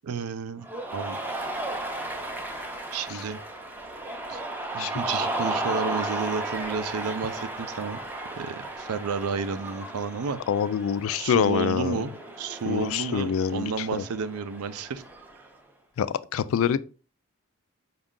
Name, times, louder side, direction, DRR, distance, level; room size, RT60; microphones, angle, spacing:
voice 1, 0.0-0.7 0.9-1.2 2.9-3.4 4.3-4.4 4.7-8.0 8.4-10.4 11.1-12.1 12.4-15.0, right 5 dB, 85° right, 0.4 m, -31 dB
Cheering, 0.6-15.5, right 2 dB, 10° right, 0.5 m, -34 dB
voice 2, 10.5-12.0 12.7-14.0 16.0-16.1 16.3-16.8, left 8 dB, 65° left, 0.3 m, -25 dB
5.2 x 2.4 x 3.7 m
head